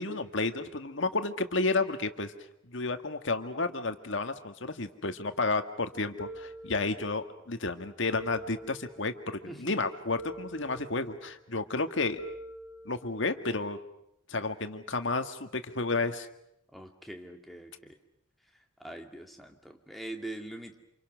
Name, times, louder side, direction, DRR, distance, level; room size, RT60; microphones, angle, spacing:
voice 1, 0.0-2.3 2.7-12.2 12.9-13.8 14.3-16.3, left 3 dB, 65° left, 8 dB, 1.7 m, -31 dB
sound 1, 6.2-7.4 8.2-9.4 10.2-11.3 12.2-13.4, right 1 dB, 85° left, 2.8 m, -45 dB
voice 2, 9.5-9.8 16.7-17.9 18.8-20.8, right 1 dB, ahead, 2 dB, 2.1 m, -43 dB
28.5 x 27.5 x 6.2 m, 0.80 s
head